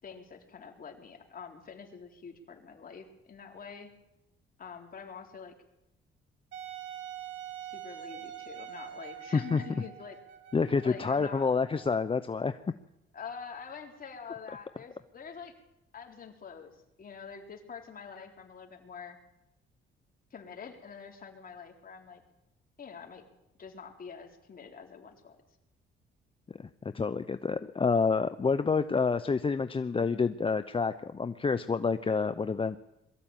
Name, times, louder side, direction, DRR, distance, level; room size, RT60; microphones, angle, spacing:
voice 1, 0.0-3.9 4.6-5.6 7.6-10.2 10.8-11.5 13.1-15.5 15.9-19.2 20.3-22.2 22.8-23.2 23.6-25.4, left 6 dB, 45° left, 2 dB, 4.0 m, -46 dB
Wind instrument woodwind instrument, 6.5-12.1, right 10 dB, 70° right, 3.0 m, -45 dB
voice 2, 10.5-12.6 26.6-32.8, left 5 dB, 25° left, 11 dB, 0.8 m, -28 dB
22.5 x 14.0 x 9.1 m, 0.87 s
cardioid pair, 90°, 20 cm